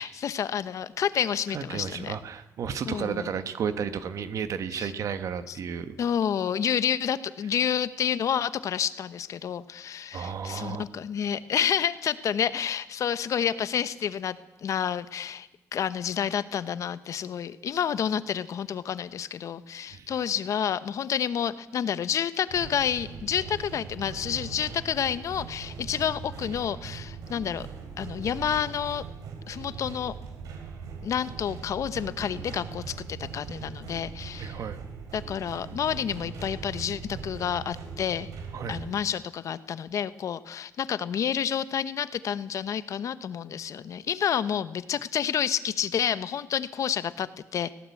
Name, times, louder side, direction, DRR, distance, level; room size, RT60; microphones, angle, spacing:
voice 1, 0.0-2.2 2.8-3.3 4.7-4.9 5.5-5.6 6.0-14.4 14.6-27.7 28.0-29.0 29.5-30.2 31.0-34.6 35.1-38.3 38.7-47.7, left 8 dB, 65° left, 14 dB, 1.1 m, -29 dB
voice 2, 1.5-5.9 10.1-10.8 19.9-20.1 34.4-34.8 38.5-38.8, right 7 dB, 65° right, 10 dB, 1.5 m, -33 dB
sound 1, 22.5-38.9, right 5 dB, 90° right, 3.5 m, -40 dB
19.0 x 17.0 x 8.5 m, 0.94 s
cardioid pair, 90°, 6 cm